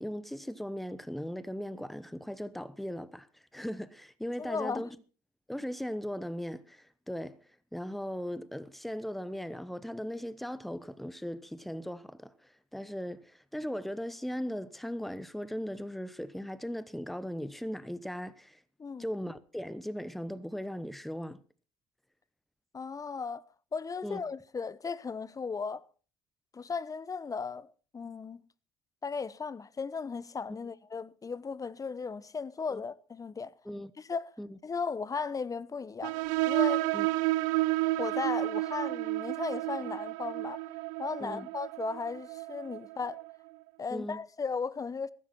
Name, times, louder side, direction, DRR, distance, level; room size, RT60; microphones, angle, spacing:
voice 1, 0.0-3.3 3.5-5.0 5.5-7.4 7.7-18.6 19.0-21.4 24.0-24.2 32.7-32.8 33.6-33.9 34.4-34.6 36.9-37.1 41.2-41.5 43.9-44.2, equal, ahead, 0.9 m, -38 dB
voice 2, 4.4-4.9 18.8-19.1 22.7-23.4 23.7-25.9 26.5-28.4 29.0-33.5 34.0-34.3 34.6-36.2 36.5-36.9 38.0-40.6 41.0-43.2 43.8-45.1, left 5 dB, 25° left, 0.9 m, -36 dB
sound 1, 36.0-43.3, right 20 dB, 75° right, 0.6 m, -31 dB
15.0 x 12.5 x 4.3 m
hypercardioid pair, 75°, 13 cm